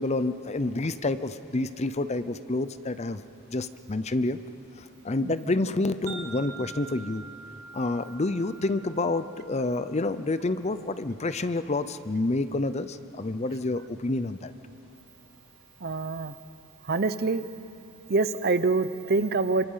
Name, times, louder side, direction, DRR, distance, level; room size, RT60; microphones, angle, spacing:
voice 1, 0.0-3.2 3.5-4.4 4.8-7.2 7.7-14.5, left 2 dB, 30° left, 13 dB, 0.6 m, -28 dB
Wind chime, 6.1-10.4, right 5 dB, 75° right, 4.3 m, -45 dB
voice 2, 15.8-16.3 16.9-17.4 18.1-19.6, right 3 dB, 45° right, 13 dB, 0.7 m, -25 dB
28.0 x 25.5 x 5.7 m, 2.8 s
head